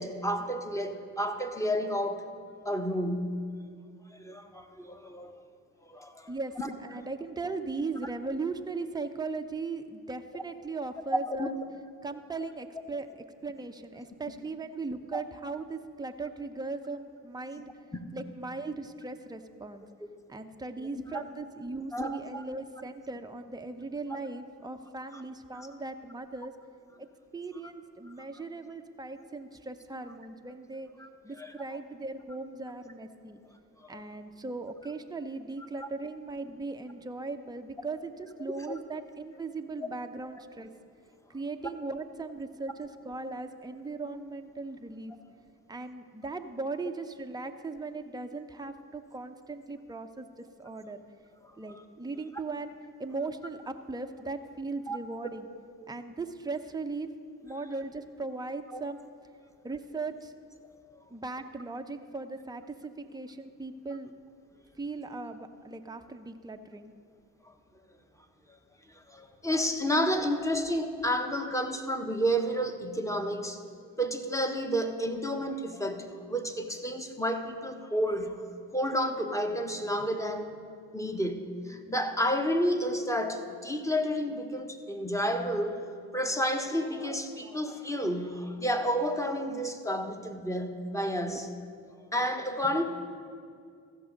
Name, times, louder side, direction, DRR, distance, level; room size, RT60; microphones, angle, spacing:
voice 1, 0.0-2.2 2.6-3.4 4.1-5.4 5.8-6.7 11.3-11.5 15.1-15.2 18.1-18.2 21.1-21.2 21.9-22.4 25.1-25.2 25.6-25.7 31.0-31.1 31.4-31.5 33.8-34.0 35.8-35.9 38.7-38.8 51.4-51.5 54.9-55.0 55.8-55.9 58.7-58.8 60.9-61.0 67.4-67.5 68.5-68.6 68.9-73.6 74.0-78.4 78.7-80.5 80.9-91.5 92.1-92.9, equal, 5° left, 5 dB, 1.2 m, -31 dB
voice 2, 6.8-11.5 12.0-13.1 13.4-19.8 20.3-26.5 27.0-27.1 27.3-30.9 31.2-33.4 33.9-40.7 41.3-45.1 45.7-51.0 51.6-52.7 53.0-55.5 55.9-57.1 57.4-59.0 59.6-60.3 61.1-64.1 64.8-66.9 91.3-91.4, right 3 dB, 10° right, 6 dB, 0.7 m, -38 dB
14.5 x 6.2 x 5.2 m, 2.2 s
hypercardioid pair, 45°, 42 cm